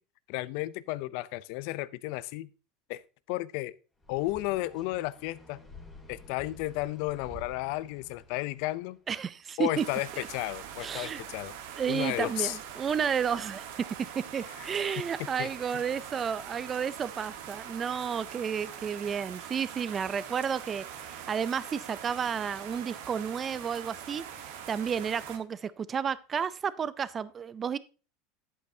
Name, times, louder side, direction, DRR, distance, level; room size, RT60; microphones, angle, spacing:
voice 1, 0.3-2.5 2.9-3.0 3.3-3.8 4.1-5.6 6.1-9.0 9.6-11.5 11.9-12.6 14.6-14.7 15.4-15.8, left 18 dB, 60° left, 0.5 m, -33 dB
sound 1, 4.0-8.9, left 1 dB, 10° left, 2.1 m, -50 dB
voice 2, 9.1-9.8 10.8-11.2 11.8-13.9 14.1-27.8, right 7 dB, 25° right, 0.4 m, -32 dB
sound 2, 9.8-25.4, right 8 dB, 75° right, 1.3 m, -43 dB
10.5 x 8.5 x 2.7 m
supercardioid pair, 140°, 0 cm